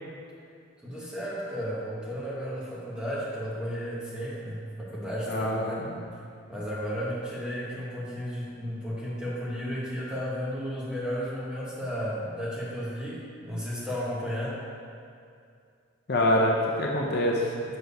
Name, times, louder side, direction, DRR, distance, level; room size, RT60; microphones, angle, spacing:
voice 1, 0.8-5.9 6.5-14.6, equal, 5° right, -7 dB, 1.1 m, -33 dB
voice 2, 5.3-6.0 16.1-17.5, left 1 dB, 50° left, -1 dB, 0.7 m, -25 dB
6.5 x 4.6 x 5.3 m, 2.3 s
head